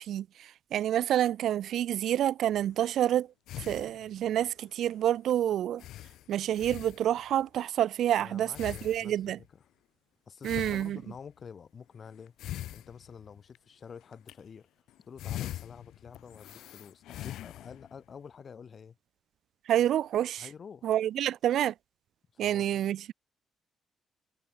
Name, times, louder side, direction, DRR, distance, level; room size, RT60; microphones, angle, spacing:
voice 1, 0.0-3.3 3.6-5.8 6.3-9.4 10.4-11.0 19.7-20.5 20.8-21.7 22.4-23.1, right 11 dB, 75° right, 0.4 m, -28 dB
sound 1, 2.5-2.9 3.5-4.4 4.9-5.0 5.3-5.4 5.8-7.4 8.5-9.5 10.4-11.4 12.3-13.6 14.0-14.3 14.9-18.0, left 13 dB, 85° left, 0.5 m, -42 dB
voice 2, 8.2-9.6 10.3-12.3 12.7-14.7 15.1-19.0 20.4-20.9 22.3-22.9, left 6 dB, 45° left, 3.2 m, -48 dB
cardioid pair, 95°, 0 cm